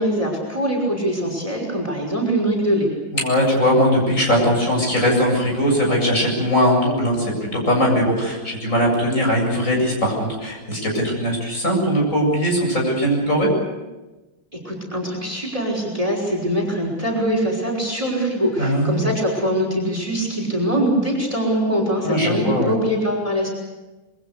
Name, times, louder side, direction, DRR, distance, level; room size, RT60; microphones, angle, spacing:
voice 1, 0.0-2.9 14.5-23.5, equal, 15° right, 0 dB, 5.8 m, -22 dB
voice 2, 3.1-13.5 18.6-19.0 22.0-22.7, equal, 40° left, 0 dB, 8.1 m, -20 dB
27.5 x 23.5 x 6.8 m, 1.1 s
omnidirectional pair, 2.1 m